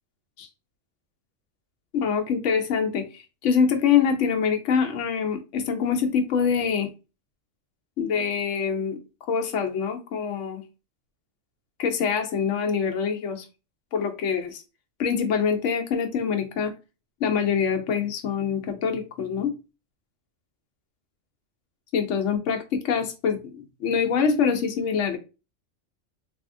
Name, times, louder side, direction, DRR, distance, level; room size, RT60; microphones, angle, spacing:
voice 1, 1.9-6.9 8.0-9.0 9.3-10.6 11.8-13.5 13.9-14.6 15.0-16.7 17.2-19.5 21.9-25.2, left 6 dB, 70° left, 5 dB, 1.0 m, -25 dB
3.4 x 2.7 x 2.5 m, 0.30 s
omnidirectional pair, 1.3 m